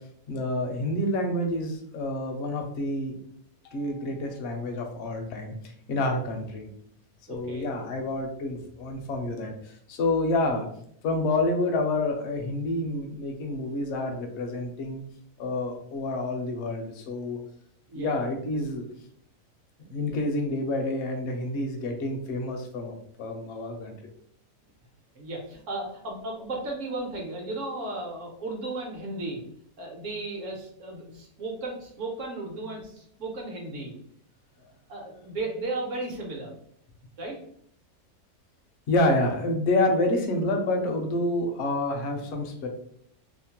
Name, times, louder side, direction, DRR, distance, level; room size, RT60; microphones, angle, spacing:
voice 1, 0.3-3.1 3.6-5.6 5.9-6.7 7.3-10.7 11.0-15.0 15.4-17.4 17.9-18.8 19.9-23.9 38.9-42.7, left 2 dB, 65° left, 3 dB, 0.7 m, -28 dB
voice 2, 7.3-7.7 17.9-18.4 20.0-20.2 25.1-29.4 29.8-33.9 34.6-36.5 37.2-37.4, right 2 dB, 60° right, 0 dB, 1.0 m, -35 dB
2.8 x 2.1 x 2.8 m, 0.67 s
omnidirectional pair, 1.6 m